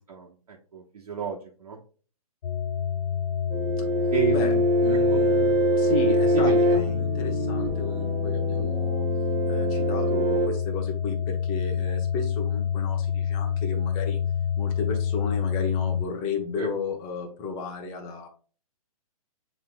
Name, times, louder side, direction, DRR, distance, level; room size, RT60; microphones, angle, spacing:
voice 1, 0.0-1.8 4.1-4.6 5.1-5.2 6.3-6.6 16.6-16.7, right 7 dB, 75° right, -2 dB, 1.1 m, -31 dB
sound 1, 2.4-16.1, left 8 dB, 90° left, 0.4 m, -28 dB
sound 2, 3.5-10.5, right 1 dB, 20° right, 0.7 m, -24 dB
voice 2, 4.8-9.0 9.5-14.2 14.6-18.3, left 4 dB, 25° left, 3 dB, 0.9 m, -33 dB
7.2 x 3.1 x 2.2 m, 0.40 s
hypercardioid pair, 145°, 19 cm